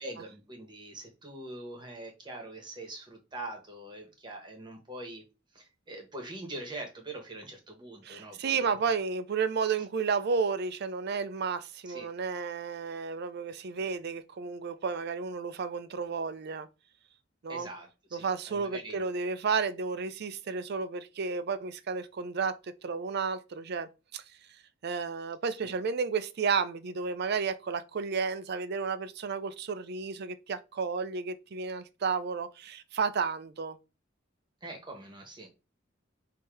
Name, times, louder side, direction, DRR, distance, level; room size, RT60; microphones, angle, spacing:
voice 1, 0.0-5.2 5.5-9.0 11.8-12.1 17.5-19.0 25.6-25.7 34.6-35.5, right 2 dB, 25° right, 1.2 m, -43 dB
voice 2, 8.0-16.7 17.4-17.7 18.1-24.2 24.8-33.8, right 5 dB, 55° right, 0.5 m, -32 dB
5.4 x 2.8 x 3.3 m
head